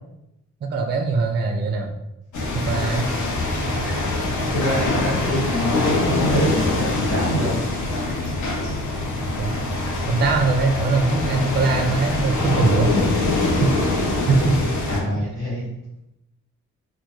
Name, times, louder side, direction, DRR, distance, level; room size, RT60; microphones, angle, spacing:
voice 1, 0.6-2.0 2.5-3.1 9.4-9.5 10.1-13.3 13.6-13.7 14.3-14.7 15.1-15.2, right 3 dB, 35° right, 4 dB, 0.4 m, -21 dB
sound 1, 2.3-15.0, left 2 dB, 70° left, 0.6 m, -24 dB
voice 2, 4.5-7.5 14.9-15.7, equal, 85° left, -7 dB, 1.3 m, -25 dB
2.2 x 2.1 x 2.9 m, 0.88 s
supercardioid pair, 45°, 31 cm